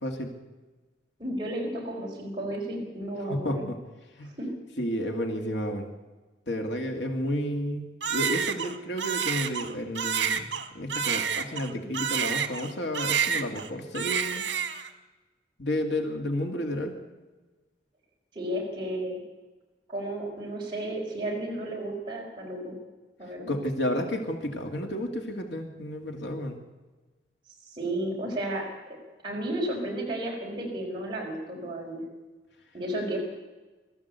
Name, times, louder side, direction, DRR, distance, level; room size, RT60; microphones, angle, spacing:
voice 1, 0.0-0.3 3.3-3.8 4.2-4.3 4.8-5.9 6.5-14.4 15.6-16.9 23.5-26.6, equal, 80° left, 3 dB, 2.4 m, -31 dB
voice 2, 1.2-3.7 4.2-4.5 18.3-19.2 19.9-22.8 23.2-23.5 27.7-28.7 29.2-32.0 32.7-33.2, right 1 dB, 25° right, -3 dB, 4.5 m, -33 dB
Crying sobbing, 8.0-12.7 12.9-13.7 13.9-14.9, right 7 dB, 80° right, 1.6 m, -29 dB
23.5 x 14.0 x 8.2 m, 1.2 s
head